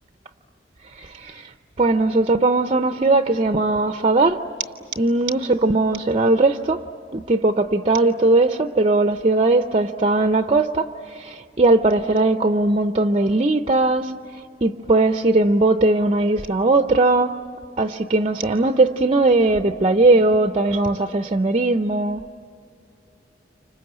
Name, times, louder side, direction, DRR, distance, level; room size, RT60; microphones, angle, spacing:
voice 1, 1.0-1.5 1.8-4.4 5.0-6.8 7.1-14.1 14.6-17.4 17.8-22.2, right 2 dB, 35° right, 8 dB, 0.6 m, -19 dB
29.0 x 26.0 x 7.9 m, 2.5 s
head